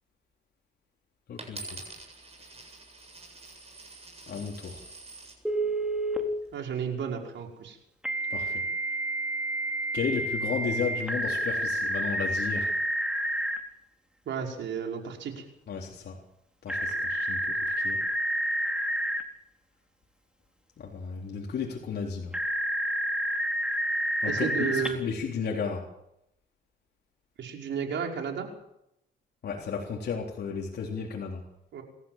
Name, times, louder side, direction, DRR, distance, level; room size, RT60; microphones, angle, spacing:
voice 1, 1.3-1.8 4.3-4.8 8.3-8.6 9.9-12.7 15.7-16.2 16.6-18.0 20.8-22.3 24.2-25.9 29.4-31.4, left 6 dB, 55° left, 0 dB, 3.8 m, -34 dB
Coin (dropping), 1.4-5.4 6.1-6.5, right 3 dB, 30° right, 7.9 m, -46 dB
Telephone, 5.4-6.2 8.0-13.6 16.7-19.2 22.3-24.9, right 1 dB, 5° right, 3.9 m, -29 dB
voice 2, 6.5-7.8 14.3-15.4 24.3-25.0 27.4-28.5 31.7-31.8, right 7 dB, 70° right, 2 dB, 5.3 m, -32 dB
27.5 x 14.0 x 7.5 m, 0.81 s
cardioid pair, 90°, 20 cm